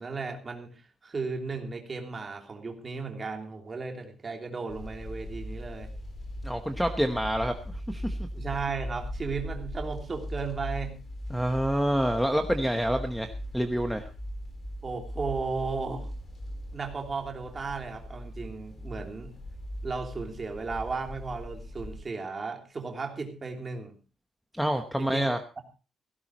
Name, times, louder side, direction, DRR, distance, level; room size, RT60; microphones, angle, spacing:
voice 1, 0.0-5.9 8.3-10.9 14.8-16.1 16.7-19.3 19.8-24.0 25.0-25.3, right 4 dB, 25° right, 3 dB, 3.1 m, -35 dB
sound 1, 4.7-22.0, equal, 30° left, 4.0 m, -39 dB
voice 2, 6.4-7.5 7.9-8.2 11.3-14.1 24.6-25.4, equal, ahead, 4 dB, 1.0 m, -27 dB
17.0 x 16.5 x 3.0 m, 0.33 s
cardioid pair, 175°, 0 cm